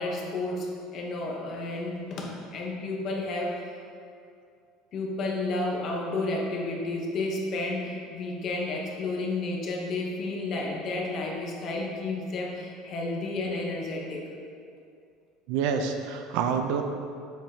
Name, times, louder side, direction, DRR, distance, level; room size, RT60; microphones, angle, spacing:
voice 1, 0.0-3.6 4.9-14.3, left 2 dB, 35° left, -1 dB, 1.0 m, -31 dB
voice 2, 15.5-16.8, right 6 dB, 60° right, 5 dB, 0.5 m, -27 dB
7.6 x 7.3 x 2.8 m, 2.3 s
cardioid pair, 175°, 0 cm